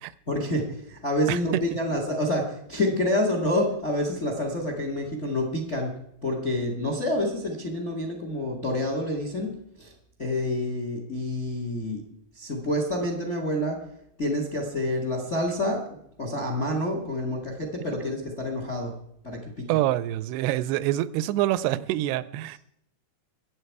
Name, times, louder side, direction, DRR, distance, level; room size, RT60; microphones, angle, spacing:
voice 1, 0.3-5.9 6.2-9.9 10.2-12.0 12.3-13.8 14.2-15.8 16.2-18.9 19.2-19.7, left 1 dB, 30° left, 3 dB, 1.3 m, -28 dB
voice 2, 19.7-22.6, right 14 dB, 85° right, 17 dB, 2.7 m, -26 dB
22.0 x 8.4 x 4.7 m, 0.73 s
omnidirectional pair, 4.7 m